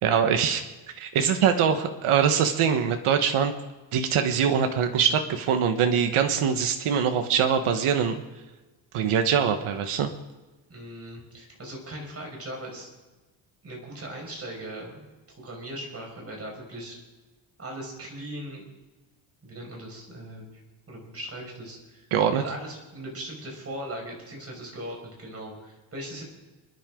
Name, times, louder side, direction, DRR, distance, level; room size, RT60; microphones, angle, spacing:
voice 1, 0.0-0.6 1.0-3.5 3.9-8.1 8.9-10.1 22.1-22.4, right 7 dB, 90° right, 6 dB, 1.4 m, -23 dB
voice 2, 10.7-12.9 13.6-17.0 17.6-18.7 19.4-20.6 20.9-22.1 22.4-26.2, right 1 dB, 30° right, 0 dB, 5.6 m, -39 dB
29.0 x 10.5 x 3.8 m, 1.2 s
cardioid pair, 145°, 49 cm